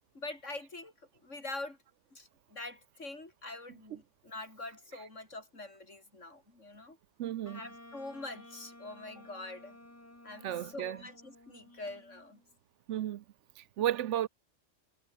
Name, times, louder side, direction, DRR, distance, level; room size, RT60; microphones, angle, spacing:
voice 1, 0.1-0.9 1.2-1.8 2.1-7.0 7.5-9.8 10.2-12.4, left 2 dB, 75° left, 5.1 m, -44 dB
voice 2, 7.2-7.6 10.4-11.0 12.9-13.2 13.6-14.3, right 12 dB, 75° right, 0.9 m, -33 dB
Wind instrument woodwind instrument, 7.4-12.5, left 1 dB, 10° left, 1.8 m, -54 dB
omnidirectional pair, 1.3 m